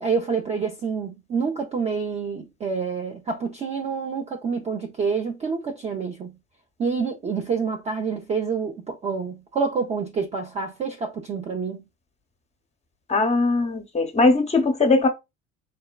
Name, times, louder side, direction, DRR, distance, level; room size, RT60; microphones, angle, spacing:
voice 1, 0.0-6.4 6.8-11.8, right 5 dB, 20° right, 0.3 m, -27 dB
voice 2, 13.1-15.1, left 3 dB, 15° left, 0.6 m, -20 dB
3.2 x 2.1 x 2.2 m
hypercardioid pair, 75°, 37 cm